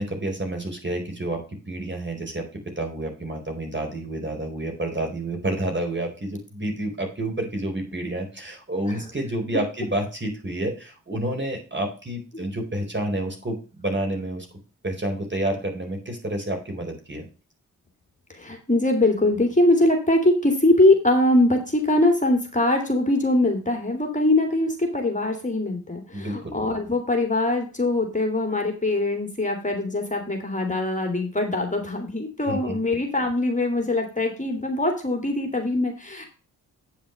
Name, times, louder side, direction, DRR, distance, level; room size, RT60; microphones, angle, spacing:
voice 1, 0.0-2.5 2.8-14.5 14.8-17.3 26.1-26.5 32.5-32.8, right 1 dB, 30° right, 3 dB, 4.5 m, -29 dB
voice 2, 18.3-36.3, left 2 dB, 20° left, 3 dB, 2.7 m, -22 dB
9.3 x 5.9 x 5.3 m, 0.35 s
supercardioid pair, 45°, 38 cm